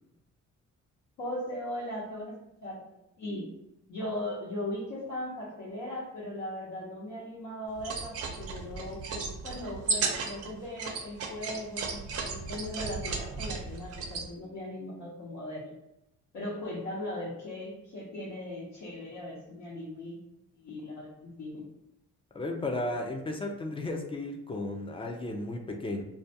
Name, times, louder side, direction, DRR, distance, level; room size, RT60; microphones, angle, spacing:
voice 1, 1.2-2.3 2.6-3.5 3.9-15.7 16.3-20.2 20.6-21.6, left 1 dB, 70° left, -7 dB, 0.8 m, -38 dB
sound 1, 7.7-14.3, right 4 dB, 55° right, 0.5 m, -35 dB
voice 2, 22.3-26.0, left 2 dB, 20° left, 3 dB, 0.3 m, -34 dB
2.3 x 2.2 x 2.7 m, 0.88 s
cardioid pair, 90°, 30 cm